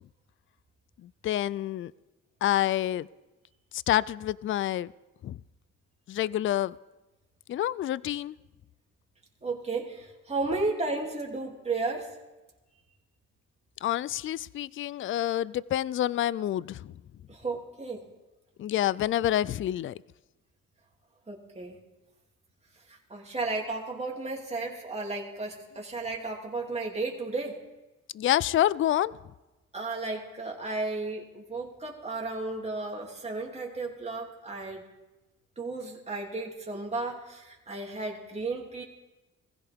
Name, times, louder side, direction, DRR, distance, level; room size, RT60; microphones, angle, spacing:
voice 1, 1.0-1.9 2.4-3.1 3.7-4.9 5.2-5.4 6.1-6.8 7.5-8.3 13.8-16.9 18.6-20.0 28.1-29.1, left 12 dB, 45° left, 21 dB, 0.4 m, -28 dB
voice 2, 9.4-12.2 17.3-18.1 21.3-21.8 22.9-27.6 29.7-34.9 35.6-38.8, right 3 dB, 20° right, -1 dB, 2.8 m, -34 dB
20.5 x 15.5 x 3.6 m, 1.1 s
cardioid pair, 90°, 30 cm